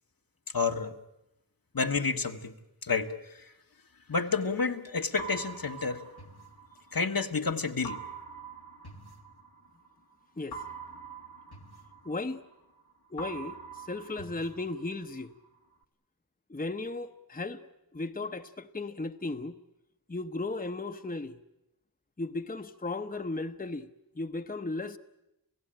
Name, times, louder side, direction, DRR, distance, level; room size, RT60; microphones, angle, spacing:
voice 1, 0.5-0.9 1.7-2.5 2.8-3.4 4.1-6.0 6.9-8.0, left 4 dB, 65° left, 1.3 m, -30 dB
sound 1, 5.2-7.3 7.8-9.9 10.5-12.8 13.2-15.3, right 4 dB, 90° left, 1.6 m, -45 dB
voice 2, 12.0-12.4 13.1-15.3 16.5-17.6 17.9-19.6 20.1-21.4 22.2-23.9 24.1-25.0, left 2 dB, 25° left, 0.9 m, -35 dB
28.0 x 17.0 x 8.9 m
wide cardioid pair, 45°, 38 cm